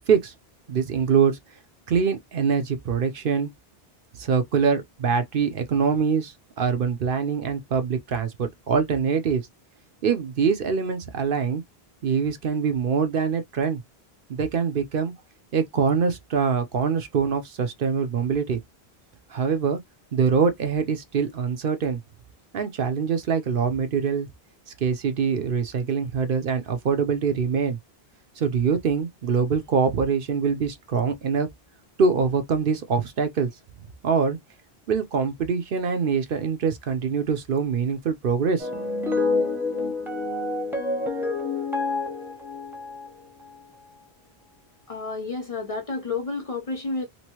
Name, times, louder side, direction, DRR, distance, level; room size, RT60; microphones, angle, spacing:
voice 1, 0.7-1.4 1.9-3.5 4.2-9.4 10.0-11.6 12.0-13.8 14.3-15.1 15.5-18.6 19.3-19.8 20.1-22.0 22.5-24.3 24.8-27.8 28.4-31.5 32.0-33.5 34.0-34.4 34.9-38.7, right 6 dB, 60° right, 0.8 m, -24 dB
sound 1, 38.6-43.6, left 3 dB, ahead, 0.8 m, -28 dB
voice 2, 44.9-47.1, left 3 dB, 40° left, 0.6 m, -30 dB
3.0 x 2.6 x 2.9 m
omnidirectional pair, 1.0 m